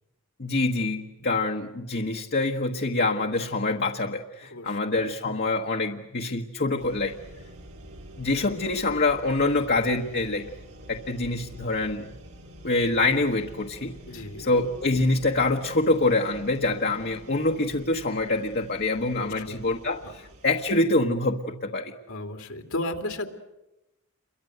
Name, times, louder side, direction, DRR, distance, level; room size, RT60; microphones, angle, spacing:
voice 1, 0.4-7.2 8.2-10.5 10.9-12.1 12.6-14.0 14.4-21.9, left 2 dB, 50° left, 1 dB, 1.3 m, -25 dB
sound 1, 6.8-20.8, right 1 dB, 90° right, 4.3 m, -47 dB
voice 2, 14.1-14.5 19.1-19.7 22.1-23.3, left 1 dB, 80° left, 5 dB, 2.9 m, -34 dB
29.0 x 23.5 x 8.0 m, 0.96 s
head